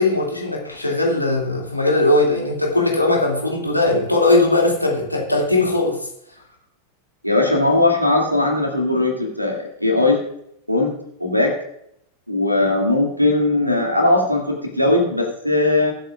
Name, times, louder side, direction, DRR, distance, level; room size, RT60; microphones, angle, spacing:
voice 1, 0.0-6.1, left 2 dB, 85° left, -1 dB, 2.5 m, -19 dB
voice 2, 7.2-10.2 10.7-10.9 11.2-11.5 12.3-15.9, left 2 dB, 90° right, 1 dB, 2.5 m, -19 dB
21.0 x 8.0 x 2.5 m, 0.75 s
figure-of-eight pair, 90°, 0 cm